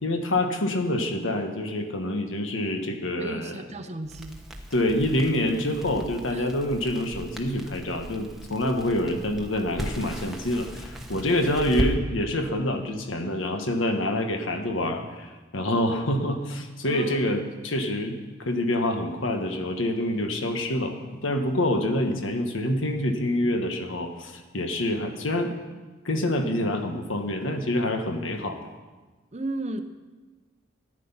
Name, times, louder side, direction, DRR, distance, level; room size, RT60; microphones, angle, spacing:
voice 1, 0.0-3.5 4.7-25.5 26.0-28.6, left 1 dB, 80° left, 5 dB, 1.4 m, -26 dB
voice 2, 3.2-4.4 6.3-6.4 11.1-11.3 16.8-17.2 29.3-29.8, right 2 dB, 35° right, 8 dB, 0.7 m, -34 dB
Crackle, 4.0-11.9, equal, ahead, 1.0 m, -36 dB
14.0 x 10.0 x 5.7 m, 1.3 s
head